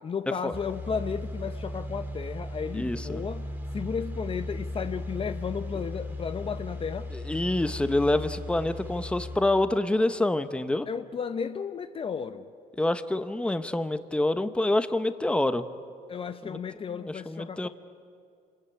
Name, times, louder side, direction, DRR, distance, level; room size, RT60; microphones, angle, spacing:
voice 1, 0.0-7.1 10.9-12.5 16.1-17.7, left 6 dB, 35° left, 10 dB, 0.8 m, -34 dB
sound 1, 0.5-9.4, left 1 dB, 10° right, 2.5 m, -36 dB
voice 2, 2.7-3.2 7.3-10.9 12.8-15.7 16.4-16.6 17.0-17.7, left 2 dB, 5° left, 11 dB, 1.0 m, -26 dB
27.5 x 21.0 x 8.6 m, 2.3 s
cardioid pair, 110°, 17 cm